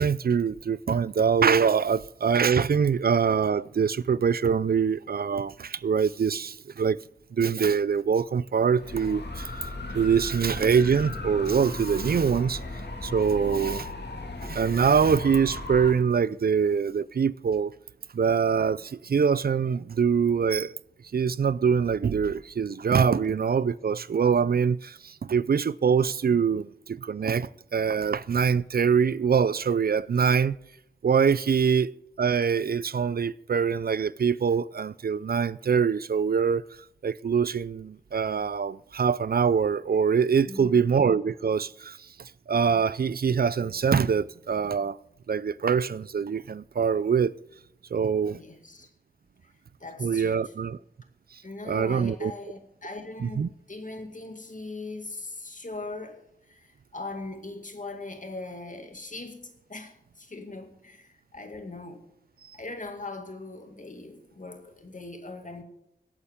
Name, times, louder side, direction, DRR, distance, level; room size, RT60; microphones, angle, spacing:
voice 1, 0.0-7.0 7.3-9.5 9.9-12.6 13.0-13.9 14.4-17.7 18.1-20.7 21.1-30.6 31.0-36.6 37.0-42.0 42.5-45.0 45.3-47.3 47.9-48.4 50.0-50.8 51.7-52.3 53.2-53.5, right 6 dB, 65° right, 0.4 m, -24 dB
sound 1, 8.7-15.9, left 2 dB, 85° left, 2.0 m, -36 dB
voice 2, 13.4-13.8 40.4-41.0 48.3-48.9 49.8-50.5 51.4-62.1 62.5-65.6, left 2 dB, 50° left, 2.2 m, -40 dB
24.0 x 8.7 x 3.6 m
wide cardioid pair, 75°, 17 cm